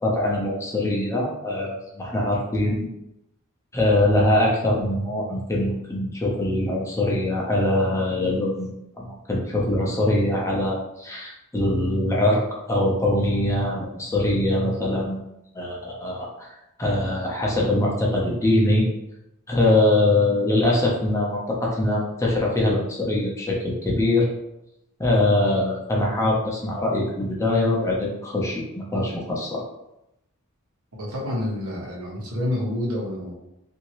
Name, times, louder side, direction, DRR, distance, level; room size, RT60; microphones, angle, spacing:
voice 1, 0.0-2.9 3.7-12.4 12.7-15.2 15.5-16.5 16.8-18.9 19.5-24.3 25.0-29.6, left 1 dB, 15° left, -3 dB, 0.6 m, -23 dB
voice 2, 30.9-33.3, left 1 dB, 75° right, -3 dB, 1.0 m, -28 dB
2.8 x 2.6 x 3.0 m, 0.86 s
head